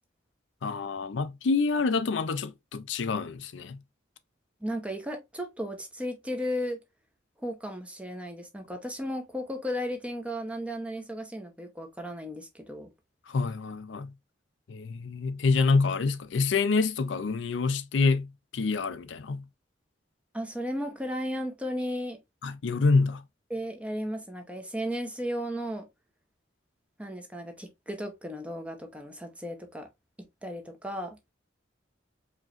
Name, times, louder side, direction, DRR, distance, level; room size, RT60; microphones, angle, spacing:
voice 1, 0.6-3.8 13.3-14.1 14.7-19.4 22.4-23.2, left 4 dB, 75° left, 0.5 m, -27 dB
voice 2, 4.6-6.8 7.4-12.9 20.3-22.2 23.5-25.9 27.0-29.9 30.4-31.2, equal, 5° right, 0.8 m, -35 dB
4.8 x 3.0 x 2.5 m
head